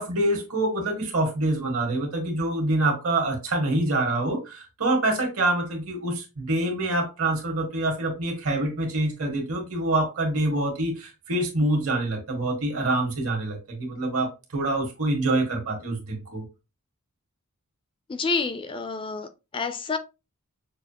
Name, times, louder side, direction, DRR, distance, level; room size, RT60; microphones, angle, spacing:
voice 1, 0.0-16.4, right 2 dB, 70° right, 1.7 m, -26 dB
voice 2, 18.1-20.0, left 4 dB, 25° left, 0.4 m, -29 dB
6.3 x 2.4 x 2.9 m
head